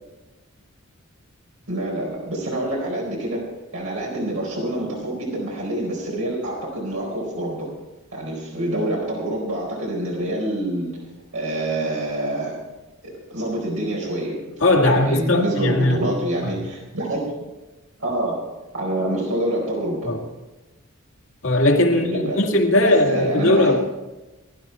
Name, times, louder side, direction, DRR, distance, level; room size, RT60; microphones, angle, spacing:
voice 1, 1.7-3.4 3.7-7.7 8.1-10.9 11.3-12.6 13.0-17.2 18.0-18.4 18.7-20.1 21.9-22.4 22.7-23.8, right 1 dB, 80° right, -3 dB, 4.4 m, -26 dB
voice 2, 14.6-16.0 20.1-20.2 21.4-23.8, left 1 dB, 65° left, 2 dB, 2.2 m, -18 dB
19.5 x 11.5 x 4.5 m, 1.1 s
head